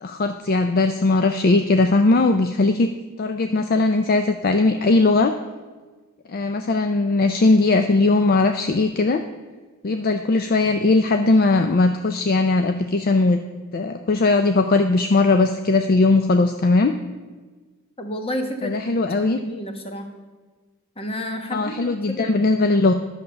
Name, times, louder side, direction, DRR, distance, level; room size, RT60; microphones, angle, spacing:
voice 1, 0.0-2.9 3.2-5.3 6.3-9.2 9.8-13.4 13.7-16.9 18.6-19.4 21.5-22.9, left 3 dB, 45° left, 8 dB, 0.4 m, -19 dB
voice 2, 18.0-18.9 19.2-20.1 21.0-22.4, equal, 25° left, 5 dB, 1.2 m, -30 dB
10.5 x 6.6 x 6.8 m, 1.4 s
head